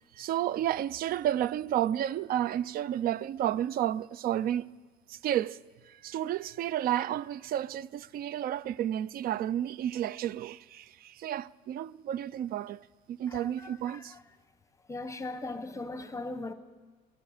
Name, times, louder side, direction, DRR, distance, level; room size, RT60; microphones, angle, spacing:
voice 1, 0.2-4.7 5.1-5.6 6.0-12.8 13.1-14.1, right 11 dB, 60° right, 0.4 m, -31 dB
voice 2, 13.3-14.2 14.9-16.5, left 2 dB, 20° left, 0.9 m, -39 dB
23.0 x 11.0 x 5.0 m
cardioid pair, 110°, 17 cm